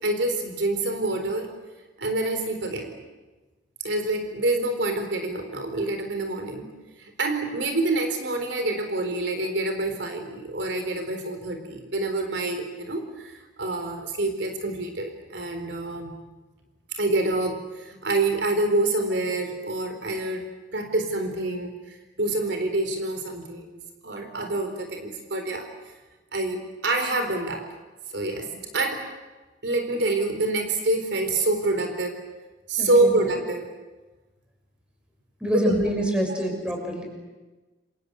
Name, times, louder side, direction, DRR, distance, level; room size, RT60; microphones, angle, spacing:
voice 1, 0.0-1.5 2.0-2.9 3.8-6.7 7.0-13.3 13.6-16.1 17.0-20.4 20.7-21.7 22.2-25.7 26.3-27.6 28.1-28.5 28.7-29.0 29.6-32.1 32.7-33.7 35.5-35.7 36.5-36.6, right 2 dB, 70° right, 5 dB, 4.2 m, -26 dB
voice 2, 32.8-33.1 35.4-37.1, equal, 5° right, 2 dB, 6.5 m, -26 dB
29.0 x 25.5 x 8.2 m, 1.2 s
head